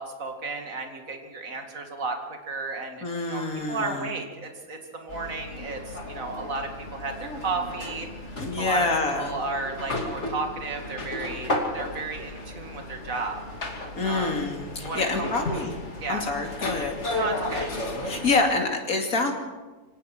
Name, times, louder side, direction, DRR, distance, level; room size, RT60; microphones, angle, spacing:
voice 1, 0.0-3.4 3.7-8.9 9.2-13.4 14.0-14.4 14.8-15.7 16.0-16.3 17.1-17.7, right 3 dB, 60° right, 4 dB, 2.7 m, -33 dB
voice 2, 3.0-4.1 8.3-9.3 14.0-15.7 16.1-17.0 18.0-19.3, left 3 dB, 70° left, 2 dB, 3.1 m, -26 dB
sound 1, 5.1-18.4, left 2 dB, 50° left, 2.9 m, -34 dB
25.0 x 18.0 x 6.1 m, 1.3 s
omnidirectional pair, 1.6 m